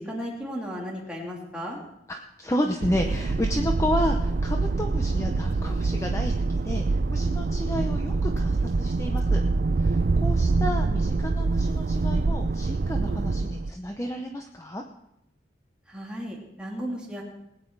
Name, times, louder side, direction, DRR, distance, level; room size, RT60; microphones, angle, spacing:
voice 1, 0.0-1.8 15.9-17.2, equal, 5° right, -3 dB, 3.0 m, -35 dB
voice 2, 2.1-9.4 9.8-14.8, equal, 15° left, 3 dB, 0.8 m, -31 dB
sound 1, 2.8-13.7, right 3 dB, 55° right, 0.4 m, -25 dB
20.0 x 9.3 x 4.7 m, 0.82 s
head